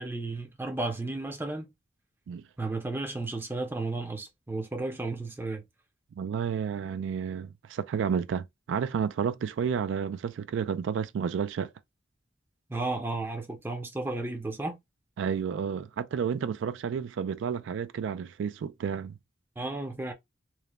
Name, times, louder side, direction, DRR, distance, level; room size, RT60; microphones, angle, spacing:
voice 1, 0.0-1.7 2.6-5.6 12.7-14.8 19.6-20.1, right 2 dB, 10° right, 0.5 m, -33 dB
voice 2, 6.2-11.7 15.2-19.1, right 7 dB, 75° right, 0.3 m, -31 dB
3.0 x 2.0 x 2.2 m
head